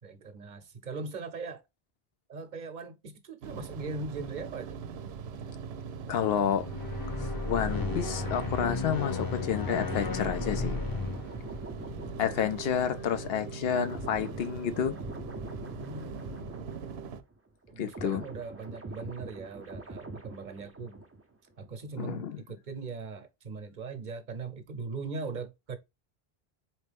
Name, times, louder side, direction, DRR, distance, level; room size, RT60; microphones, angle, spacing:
voice 1, 0.0-1.6 2.3-4.8 12.0-12.5 15.8-16.8 17.7-21.0 21.6-25.8, right 4 dB, 50° right, 0.9 m, -40 dB
sound 1, 3.4-17.2, right 6 dB, 85° right, 0.8 m, -41 dB
voice 2, 6.1-6.7 7.5-10.8 12.2-15.0 17.8-18.2 22.0-22.4, left 8 dB, 75° left, 0.8 m, -30 dB
sound 2, 6.5-12.9, left 3 dB, 25° left, 0.7 m, -34 dB
sound 3, 9.9-17.4 17.6-21.4 21.6-21.9, right 2 dB, 20° right, 0.4 m, -44 dB
4.1 x 3.0 x 3.3 m
omnidirectional pair, 1.0 m